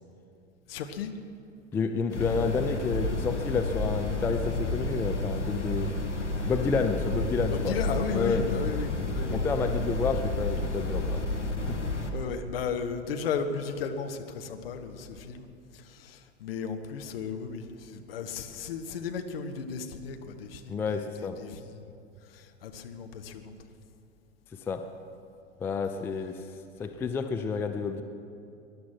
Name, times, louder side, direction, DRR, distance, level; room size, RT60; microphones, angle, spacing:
voice 1, 0.7-1.1 7.5-9.4 12.1-15.5 15.7-21.9 22.2-23.5, left 6 dB, 55° left, 6 dB, 1.4 m, -35 dB
voice 2, 1.7-5.9 6.4-7.8 8.1-8.5 9.3-11.3 11.7-11.8 20.7-21.4 24.5-24.9 25.6-26.4 26.8-28.0, left 4 dB, 5° left, 7 dB, 0.4 m, -29 dB
brown noise shower verb, 2.1-12.1, left 2 dB, 85° left, 1.7 m, -31 dB
20.0 x 11.0 x 6.0 m, 2.5 s
figure-of-eight pair, 90°, 34 cm